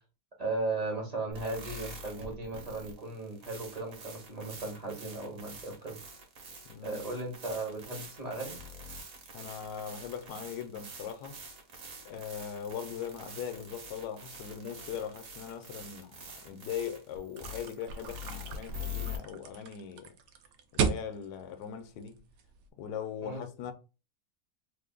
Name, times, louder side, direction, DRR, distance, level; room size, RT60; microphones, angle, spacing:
voice 1, 0.4-6.0 6.8-8.6 23.2-23.4, right 2 dB, 30° right, 0.8 m, -36 dB
sound 1, 1.3-19.2, left 1 dB, 55° right, 1.3 m, -45 dB
voice 2, 6.7-7.0 9.3-11.4 12.0-20.1 20.7-22.2 22.8-23.7, left 8 dB, 70° left, 1.1 m, -40 dB
sound 2, 17.4-22.7, right 6 dB, 75° right, 1.1 m, -36 dB
3.3 x 2.3 x 3.6 m
omnidirectional pair, 1.9 m